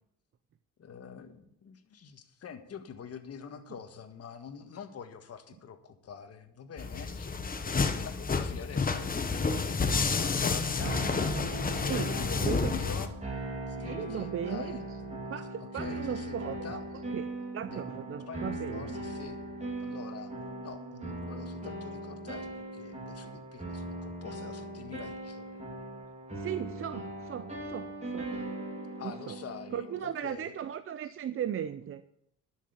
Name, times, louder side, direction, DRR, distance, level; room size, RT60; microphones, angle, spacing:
voice 1, 0.8-9.2 9.7-11.2 11.9-13.1 13.5-14.9 15.6-16.8 17.7-17.8 18.3-19.4 19.8-20.3 20.6-25.6 29.0-30.6, left 7 dB, 55° left, 7 dB, 1.7 m, -46 dB
sound 1, 6.8-13.1, left 4 dB, 30° left, 1.2 m, -30 dB
sound 2, 10.8-30.0, right 2 dB, 20° right, 3.4 m, -39 dB
voice 2, 12.4-12.7 13.8-14.7 15.3-16.8 17.1-17.2 17.5-18.9 26.4-28.3 29.0-29.4 29.7-32.0, right 9 dB, 45° right, 12 dB, 0.6 m, -37 dB
11.5 x 6.6 x 8.2 m, 0.73 s
cardioid pair, 90°, 30 cm